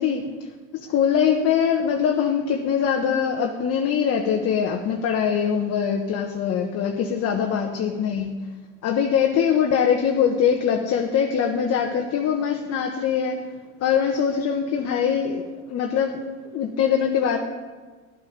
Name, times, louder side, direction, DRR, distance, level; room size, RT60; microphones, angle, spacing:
voice 1, 0.0-8.5 8.8-13.4 13.8-17.4, left 7 dB, 40° left, 2 dB, 1.1 m, -23 dB
13.5 x 8.3 x 5.2 m, 1.4 s
hypercardioid pair, 85°, 39 cm